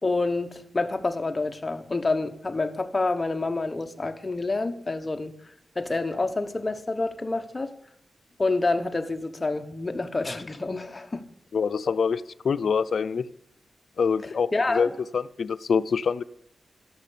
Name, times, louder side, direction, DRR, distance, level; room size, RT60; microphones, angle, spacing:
voice 1, 0.0-5.3 5.7-7.7 8.4-11.3 14.5-14.9, left 3 dB, 25° left, 1.2 m, -28 dB
voice 2, 11.5-13.3 14.0-16.2, left 6 dB, 70° left, 0.6 m, -25 dB
12.5 x 12.5 x 8.5 m
wide cardioid pair, 130°, 0 cm